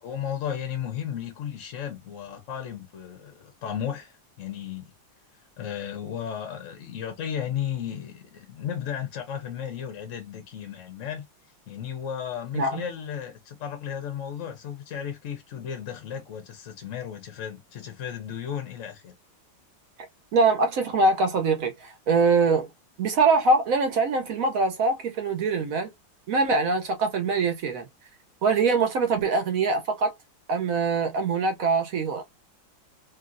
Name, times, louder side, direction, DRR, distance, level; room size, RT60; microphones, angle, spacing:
voice 1, 0.0-4.9 5.6-11.2 11.7-19.1, left 9 dB, 60° left, 0.8 m, -34 dB
voice 2, 20.3-22.7 23.0-25.9 26.3-27.9 28.4-30.1 30.5-32.2, right 3 dB, 65° right, 0.9 m, -23 dB
3.1 x 2.5 x 2.5 m
omnidirectional pair, 2.1 m